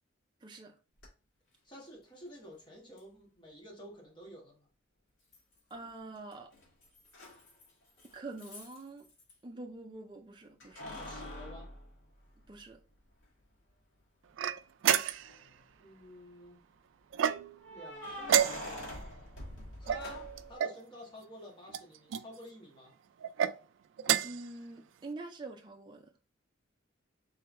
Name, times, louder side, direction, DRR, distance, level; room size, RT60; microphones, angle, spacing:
voice 1, 0.4-0.8 5.7-6.5 8.1-9.1 9.4-10.9 12.5-12.8 24.2-26.1, right 2 dB, 25° right, 0.4 m, -45 dB
Keys jangling, 1.0-1.1 3.0-3.1 5.3-5.9 6.2-9.3 10.6-12.7 13.2-13.3 15.1-15.6 17.6-20.6, left 1 dB, 85° left, 1.6 m, -45 dB
voice 2, 1.6-4.7 10.8-11.7 15.8-16.6 17.7-19.1 19.8-22.9, left 1 dB, 25° left, 1.4 m, -51 dB
sound 1, 14.4-15.4 17.1-17.7 18.2-19.0 19.9-20.8 21.7-22.3 23.2-23.5 24.0-24.5, right 9 dB, 90° right, 0.3 m, -30 dB
3.8 x 3.3 x 3.2 m
head